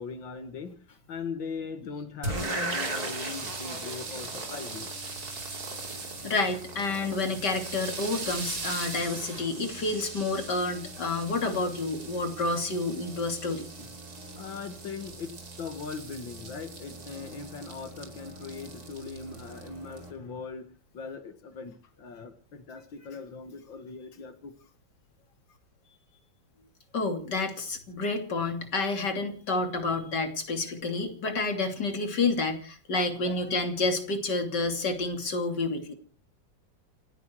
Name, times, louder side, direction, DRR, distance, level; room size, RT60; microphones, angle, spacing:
voice 1, 0.0-4.9 13.8-13.9 14.4-20.7 20.9-24.7 25.5-25.6 33.2-33.7, left 5 dB, 85° left, 7 dB, 2.4 m, -40 dB
sound 1, 2.2-20.1, right 2 dB, 55° right, 3.3 m, -38 dB
voice 2, 6.2-13.7 26.9-35.9, left 3 dB, 65° left, 5 dB, 3.6 m, -29 dB
29.0 x 9.9 x 4.7 m, 0.41 s
omnidirectional pair, 2.0 m